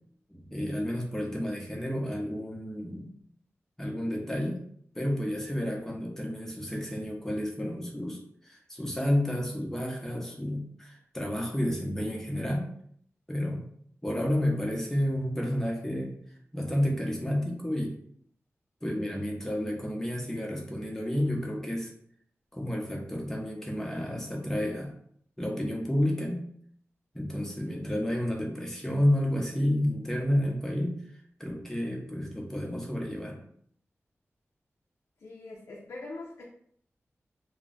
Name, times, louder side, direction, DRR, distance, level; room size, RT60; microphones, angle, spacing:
voice 1, 0.3-3.0 3.8-4.6 4.9-12.7 13.3-13.6 14.0-16.1 16.5-18.0 18.8-21.9 22.5-24.9 25.4-26.4 27.1-31.0 31.4-33.4, equal, 10° left, -1 dB, 0.7 m, -30 dB
voice 2, 2.8-3.2 35.2-36.4, left 2 dB, 80° left, -3 dB, 0.5 m, -43 dB
2.3 x 2.0 x 3.7 m, 0.64 s
wide cardioid pair, 65°, 5 cm